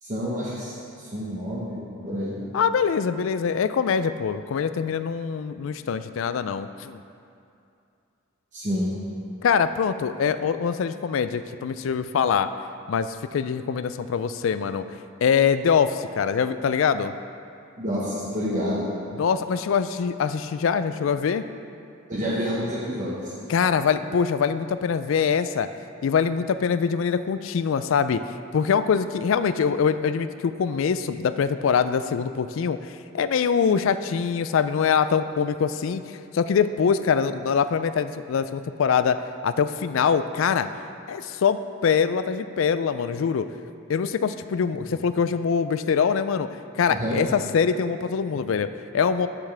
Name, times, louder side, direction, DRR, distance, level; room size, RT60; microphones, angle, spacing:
voice 1, 0.0-2.4 8.5-8.9 17.8-18.9 22.1-23.3 44.7-44.8 46.9-47.2, equal, 40° right, -7 dB, 1.2 m, -29 dB
voice 2, 2.5-7.0 9.4-12.5 12.9-14.9 15.2-17.1 19.1-21.5 23.5-25.7 26.0-28.2 28.5-40.7 41.1-43.5 43.9-46.5 46.7-49.3, left 6 dB, 70° left, 12 dB, 0.3 m, -24 dB
13.5 x 5.9 x 3.3 m, 2.5 s
head